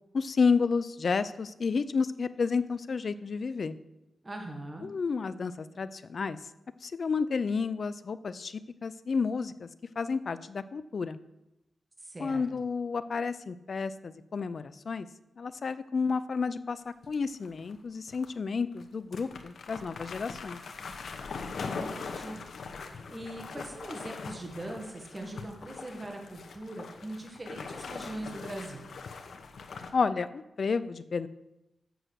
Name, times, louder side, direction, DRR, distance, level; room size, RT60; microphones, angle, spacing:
voice 1, 0.1-3.8 4.8-6.4 6.8-9.7 10.0-11.2 12.2-15.1 15.4-16.8 17.1-20.6 29.9-31.3, left 5 dB, 55° left, 14 dB, 0.5 m, -31 dB
voice 2, 4.2-4.9 12.0-12.4 21.5-22.4 22.7-28.8, right 1 dB, 25° right, 2 dB, 1.6 m, -41 dB
sound 1, 17.0-17.8 18.1-18.3 18.8-18.9 19.1-29.9, left 4 dB, 75° left, 0.9 m, -41 dB
7.8 x 6.7 x 6.3 m, 0.93 s
wide cardioid pair, 100°, 0 cm